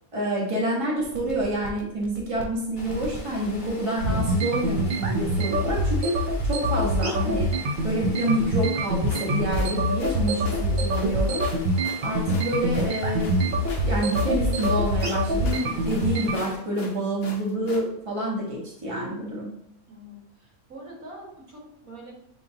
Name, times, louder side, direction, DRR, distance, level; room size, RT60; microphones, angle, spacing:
voice 1, 0.1-7.5 7.8-11.4 12.0-19.5, right 1 dB, 25° right, -4 dB, 1.2 m, -28 dB
sound 1, 1.0-16.3, equal, 60° right, 0.5 m, -25 dB
Water, 2.8-16.6, left 2 dB, 40° left, 1.0 m, -44 dB
sound 2, 9.1-17.9, left 3 dB, 60° left, 0.7 m, -40 dB
voice 2, 19.9-22.1, right 1 dB, 90° right, -4 dB, 2.0 m, -44 dB
6.7 x 2.6 x 2.7 m, 0.77 s
omnidirectional pair, 1.4 m